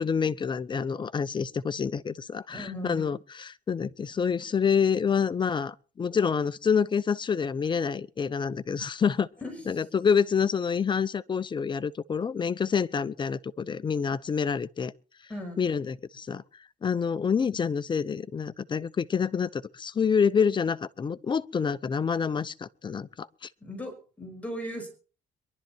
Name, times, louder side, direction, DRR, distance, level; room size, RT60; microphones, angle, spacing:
voice 1, 0.0-9.3 9.7-14.9 15.6-16.4 16.8-23.5, left 6 dB, 30° left, 0.7 m, -27 dB
voice 2, 2.5-3.1 9.4-9.8 15.3-15.7 23.6-24.9, equal, 10° left, 5.6 m, -38 dB
23.5 x 12.0 x 4.5 m
cardioid pair, 110°, 17 cm